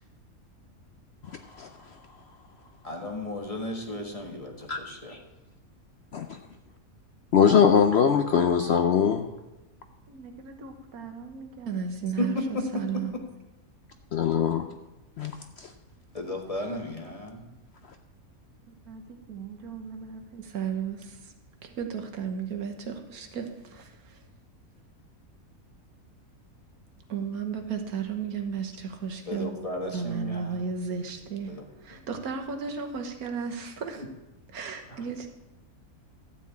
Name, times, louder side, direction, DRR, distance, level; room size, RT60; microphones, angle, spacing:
voice 1, 2.8-5.2 12.2-12.6 16.1-17.5 29.3-30.6 31.5-31.6 34.0-34.1 34.9-35.0, left 1 dB, 25° left, 2 dB, 1.3 m, -34 dB
voice 2, 7.3-9.2 14.1-14.6 15.2-15.3 15.6-15.7, left 7 dB, 60° left, 7 dB, 0.7 m, -21 dB
voice 3, 10.1-13.1 18.7-21.3 21.6-24.2 27.1-29.6 29.9-31.5 31.8-34.0 34.5-35.3, right 6 dB, 85° right, 4 dB, 1.6 m, -34 dB
12.5 x 4.3 x 8.3 m, 1.0 s
omnidirectional pair, 1.5 m